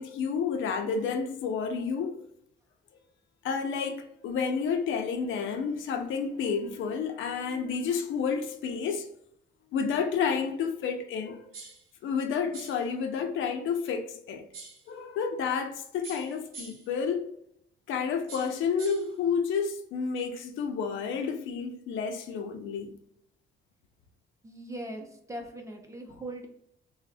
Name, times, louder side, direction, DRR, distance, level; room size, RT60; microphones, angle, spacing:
voice 1, 0.0-2.2 3.4-9.1 9.7-11.5 12.0-14.4 14.9-17.3 17.9-22.9, left 6 dB, 75° left, 0.5 m, -30 dB
sound 1, 11.5-11.9 12.5-12.9 14.5-14.9 16.0-16.9 18.3-19.1, right 4 dB, 90° right, 0.7 m, -45 dB
voice 2, 24.4-26.5, right 1 dB, 15° right, 0.6 m, -40 dB
3.0 x 2.0 x 2.6 m
cardioid pair, 90°, 20 cm